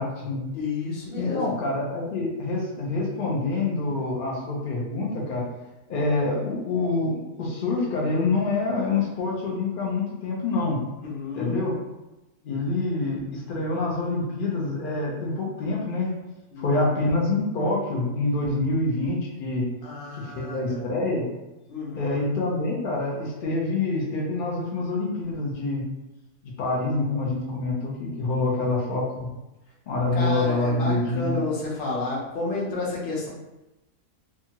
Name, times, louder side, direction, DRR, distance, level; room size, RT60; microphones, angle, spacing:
voice 1, 0.0-0.4 1.2-5.4 5.9-10.8 11.3-11.7 12.4-16.1 16.6-19.7 20.1-21.3 22.0-25.8 26.4-29.3 29.9-31.4, left 2 dB, 85° left, -3 dB, 0.4 m, -26 dB
voice 2, 0.5-1.5 11.0-11.6 16.5-16.9 19.8-20.8 21.7-22.2 28.4-28.7 30.1-33.3, left 3 dB, 45° left, -5 dB, 0.7 m, -31 dB
2.8 x 2.3 x 2.8 m, 1.0 s
omnidirectional pair, 1.7 m